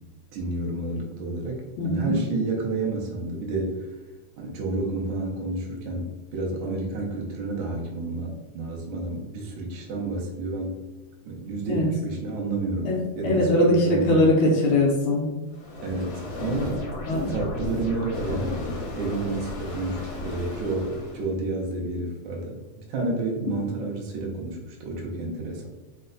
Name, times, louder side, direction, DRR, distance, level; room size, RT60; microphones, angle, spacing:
voice 1, 0.3-3.9 4.4-10.8 11.2-14.2 15.8-18.7 18.9-25.7, right 2 dB, 85° right, -1 dB, 1.1 m, -30 dB
voice 2, 1.8-2.1 11.7-11.9 12.8-15.3 17.1-17.3, left 1 dB, 85° left, -3 dB, 1.2 m, -21 dB
sound 1, 15.5-21.3, left 2 dB, 60° left, 1.8 m, -34 dB
4.5 x 2.2 x 3.8 m, 1.2 s
omnidirectional pair, 3.3 m